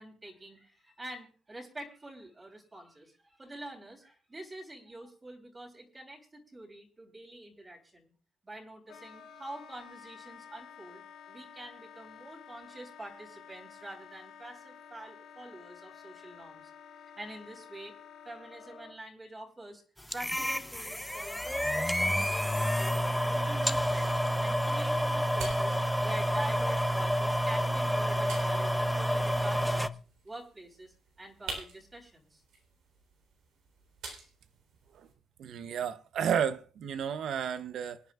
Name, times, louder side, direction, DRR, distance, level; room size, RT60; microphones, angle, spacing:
voice 1, 0.0-8.1 8.4-16.7 17.2-18.0 18.2-19.8 20.1-24.1 24.4-25.8 26.0-30.0 30.2-32.4, right 1 dB, 25° right, 3.6 m, -46 dB
Wind instrument woodwind instrument, 8.9-19.0, left 7 dB, 85° left, 2.1 m, -51 dB
sound 1, 20.1-29.9, equal, 5° left, 0.5 m, -29 dB
sound 2, 23.1-35.1, right 4 dB, 85° right, 3.7 m, -49 dB
voice 2, 35.4-38.0, right 8 dB, 70° right, 0.7 m, -32 dB
25.0 x 9.2 x 2.4 m
cardioid pair, 90°, 0 cm